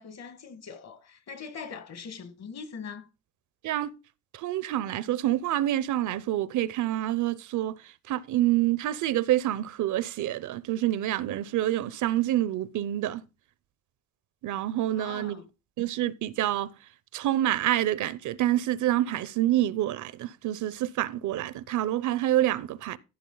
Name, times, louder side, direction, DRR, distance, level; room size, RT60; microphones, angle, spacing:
voice 1, 0.0-3.1 14.9-15.5, left 5 dB, 60° left, 1.9 m, -42 dB
voice 2, 4.3-13.2 14.4-15.4 15.8-16.7 17.1-23.0, right 13 dB, 75° right, 0.7 m, -27 dB
14.5 x 5.7 x 3.9 m
cardioid pair, 90°, 30 cm